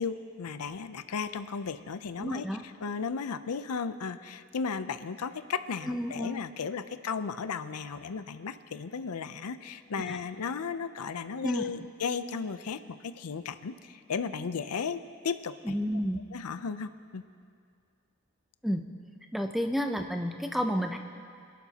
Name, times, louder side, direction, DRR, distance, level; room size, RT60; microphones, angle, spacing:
voice 1, 0.0-2.5 2.8-15.8 16.3-17.2, left 5 dB, 90° left, 12 dB, 0.6 m, -35 dB
voice 2, 2.2-2.7 5.8-6.4 10.1-10.2 11.4-11.6 15.6-16.2 18.6-18.8 19.3-21.0, equal, ahead, 5 dB, 0.5 m, -30 dB
26.0 x 11.5 x 2.9 m, 2.3 s
head